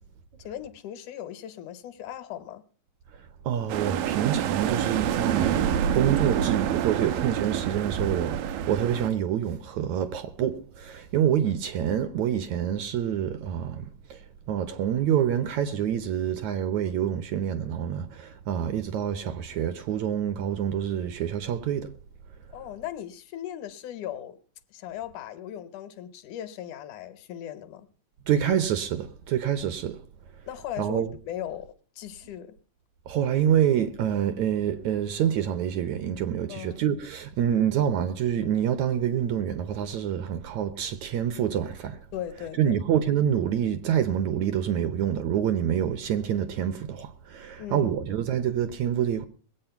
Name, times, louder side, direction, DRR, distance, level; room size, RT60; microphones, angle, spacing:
voice 1, 0.4-2.6 22.5-24.4 24.7-27.9 30.5-32.6 36.5-36.8 42.1-42.8 47.6-48.0, left 11 dB, 70° left, 2.2 m, -38 dB
voice 2, 3.4-14.2 14.5-21.9 28.3-30.0 30.8-31.1 33.1-42.0 42.6-49.3, right 9 dB, 70° right, 1.9 m, -27 dB
sound 1, 3.7-9.1, right 9 dB, 90° right, 2.6 m, -27 dB
20.5 x 8.5 x 5.8 m
omnidirectional pair, 3.8 m